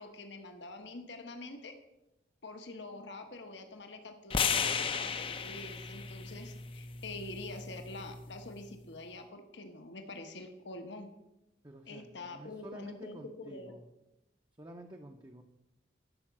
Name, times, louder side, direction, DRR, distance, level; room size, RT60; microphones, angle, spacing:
voice 1, 0.0-1.7 2.4-11.1 11.9-13.7, left 2 dB, 75° left, 6 dB, 1.2 m, -46 dB
sound 1, 4.3-8.5, left 6 dB, 30° left, 0.5 m, -35 dB
voice 2, 11.6-13.8 14.6-15.4, right 1 dB, 20° right, 2 dB, 0.7 m, -50 dB
12.0 x 5.7 x 7.4 m, 0.94 s
head